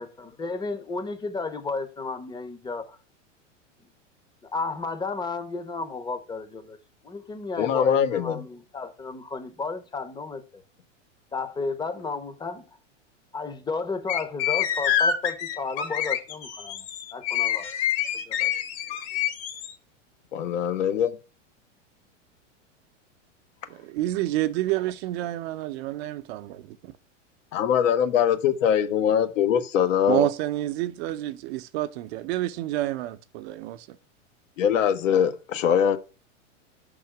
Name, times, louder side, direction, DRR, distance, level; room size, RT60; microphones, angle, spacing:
voice 1, 0.0-3.0 4.4-6.8 7.0-10.6 11.3-12.6 13.3-16.9 17.1-17.7 18.3-18.5, left 4 dB, 10° left, 0.7 m, -33 dB
voice 2, 7.6-8.4 20.3-21.1 27.5-30.3 34.6-36.0, left 8 dB, 75° left, 1.0 m, -22 dB
sax whistle, 14.1-19.7, left 9 dB, 40° left, 1.1 m, -27 dB
voice 3, 23.7-26.9 30.1-33.9, right 15 dB, 55° right, 0.7 m, -29 dB
5.7 x 3.8 x 5.8 m
hypercardioid pair, 120°, 37 cm